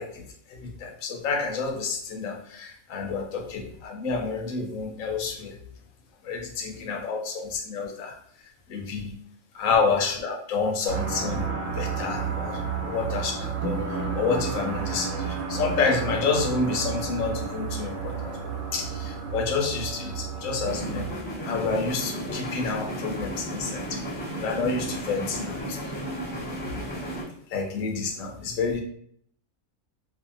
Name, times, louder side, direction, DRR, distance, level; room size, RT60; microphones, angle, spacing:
voice 1, 0.0-5.6 6.2-8.2 8.7-9.1 9.5-21.1 21.4-24.0 24.3-25.8 27.5-28.8, left 4 dB, 75° left, 3 dB, 1.0 m, -29 dB
sound 1, 10.9-21.1, right 5 dB, 75° right, 1.1 m, -31 dB
sound 2, 20.6-27.2, right 1 dB, 10° left, 0.5 m, -34 dB
2.6 x 2.4 x 2.5 m, 0.63 s
omnidirectional pair, 1.4 m